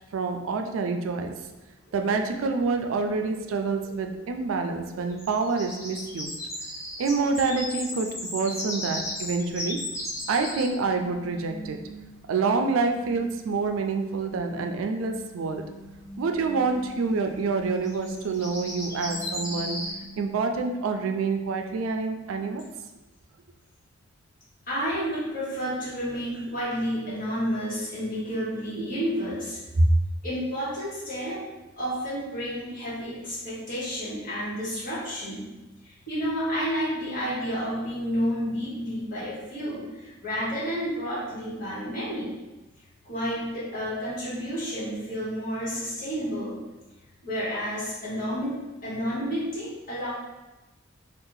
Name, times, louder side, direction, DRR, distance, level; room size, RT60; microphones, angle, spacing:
voice 1, 0.1-1.3 1.9-6.3 7.0-9.8 10.3-11.8 12.3-15.6 16.2-19.8 20.2-22.6, right 4 dB, 85° right, 5 dB, 0.4 m, -27 dB
sound 1, 1.4-1.6 1.9-12.1 12.8-12.9 13.1-13.2 13.5-13.6 15.5-15.6 15.9-16.1 16.7-19.9, left 1 dB, 15° left, 0.8 m, -36 dB
sound 2, 9.2-21.2, equal, 20° right, 0.7 m, -45 dB
voice 2, 24.7-29.9 30.2-31.4 31.8-35.5 35.8-42.3 43.0-46.6 47.2-50.1, equal, 45° left, -9 dB, 1.5 m, -30 dB
2.7 x 2.4 x 3.8 m, 1.1 s
head